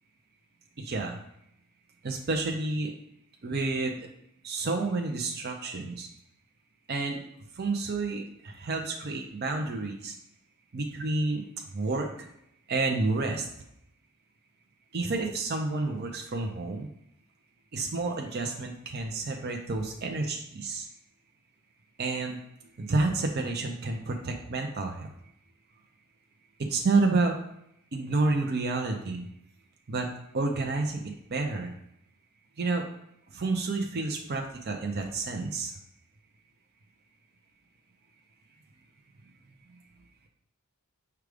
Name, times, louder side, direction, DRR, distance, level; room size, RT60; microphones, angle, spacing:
voice 1, 0.8-1.2 2.0-2.9 3.4-4.1 4.4-6.1 6.9-7.2 7.5-10.2 10.7-11.4 11.7-12.1 12.7-13.5 14.9-16.9 17.7-20.9 22.0-22.4 22.8-25.1 26.6-27.4 27.9-29.3 29.9-30.1 30.3-31.7 32.6-32.8 33.3-35.7, right 3 dB, 45° right, 2 dB, 0.5 m, -29 dB
4.8 x 2.3 x 4.8 m, 0.76 s
head